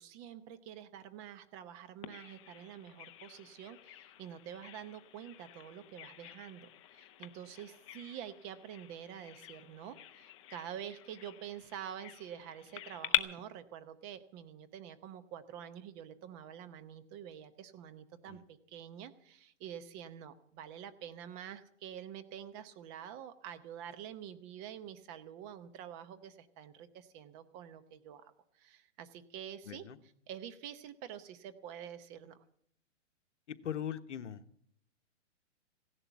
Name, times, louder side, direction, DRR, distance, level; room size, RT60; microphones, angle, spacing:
voice 1, 0.0-29.8 30.3-32.4, right 9 dB, 25° right, 11 dB, 0.8 m, -47 dB
Bird vocalization bird call bird song, 2.0-13.2, left 14 dB, 25° left, 0.5 m, -43 dB
voice 2, 29.7-30.0 33.5-34.4, left 9 dB, 70° left, 10 dB, 1.2 m, -40 dB
16.5 x 11.0 x 7.1 m, 0.66 s
hypercardioid pair, 145°, 37 cm